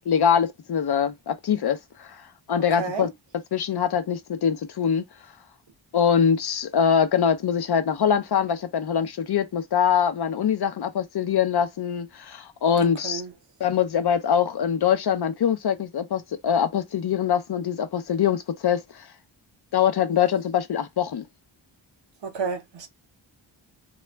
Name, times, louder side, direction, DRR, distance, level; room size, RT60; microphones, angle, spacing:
voice 1, 0.1-2.2 2.5-3.1 3.5-5.0 5.9-13.2 13.6-19.1 19.7-21.3, left 8 dB, 55° left, 0.6 m, -23 dB
voice 2, 2.8-3.1 12.7-13.3 22.2-22.9, right 5 dB, 70° right, 0.9 m, -31 dB
2.3 x 2.1 x 3.3 m
cardioid pair, 65°, 46 cm